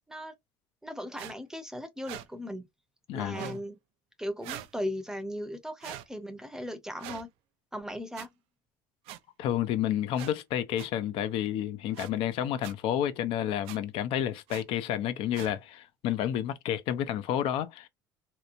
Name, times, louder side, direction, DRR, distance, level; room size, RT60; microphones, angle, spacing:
voice 1, 0.8-2.7 3.1-3.8 4.2-7.3 7.7-8.3, equal, 5° right, 0.6 m, -37 dB
sound 1, 1.2-1.3 2.0-2.3 3.3-3.6 4.4-4.7 5.8-6.1 7.0-7.2 8.1-8.3 9.1-9.2 10.1-10.3 10.8-10.9 11.9-12.1 12.6-12.7 13.6-13.8 14.5-14.6 15.3-15.5, right 13 dB, 75° right, 0.4 m, -41 dB
voice 2, 3.1-3.6 9.4-17.9, left 10 dB, 65° left, 0.4 m, -30 dB
2.9 x 2.0 x 2.4 m
cardioid pair, 115°, 10 cm